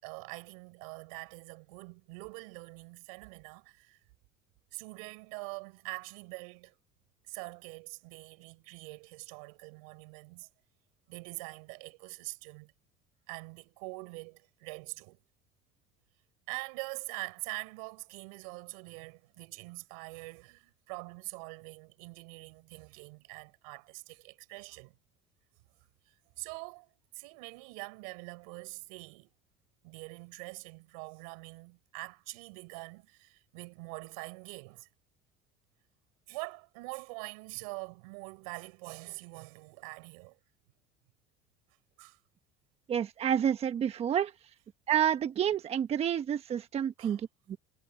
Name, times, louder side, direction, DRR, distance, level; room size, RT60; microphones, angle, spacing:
voice 1, 0.0-4.0 4.7-6.7 7.3-10.5 11.1-12.7 13.3-15.2 16.5-24.9 26.4-29.3 29.8-34.9 36.3-40.4 42.0-42.2 47.0-47.2, right 30 dB, 90° right, 4.2 m, -44 dB
voice 2, 42.9-44.3 44.9-47.6, right 9 dB, 35° right, 1.2 m, -29 dB
cardioid pair, 125°, 17 cm